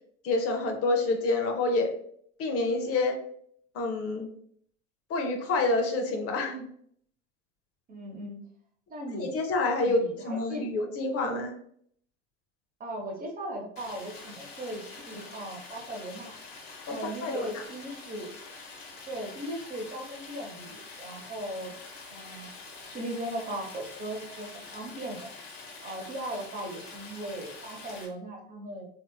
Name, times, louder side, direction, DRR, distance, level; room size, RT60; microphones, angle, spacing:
voice 1, 0.2-1.9 2.4-3.2 3.7-4.3 5.1-6.6 9.1-10.0 10.2-11.5 16.9-17.6, left 2 dB, 40° left, 4 dB, 0.8 m, -28 dB
voice 2, 7.9-8.4 8.9-9.4 9.8-10.6 12.8-16.4 16.9-18.3 19.1-21.8 22.1-22.5 22.9-25.4 25.8-28.8, right 1 dB, 25° right, 0 dB, 1.0 m, -38 dB
Stream, 13.8-28.1, left 3 dB, 60° left, 1.2 m, -46 dB
3.4 x 2.8 x 2.3 m, 0.63 s
hypercardioid pair, 80°, 36 cm